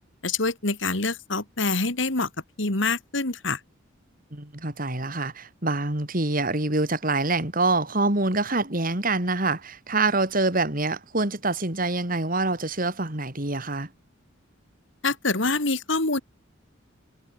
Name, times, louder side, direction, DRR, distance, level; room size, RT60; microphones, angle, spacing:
voice 1, 0.2-2.3 2.6-3.6 15.0-16.2, left 3 dB, 65° left, 2.7 m, -25 dB
voice 2, 4.3-13.9, right 2 dB, 45° right, 3.5 m, -25 dB
head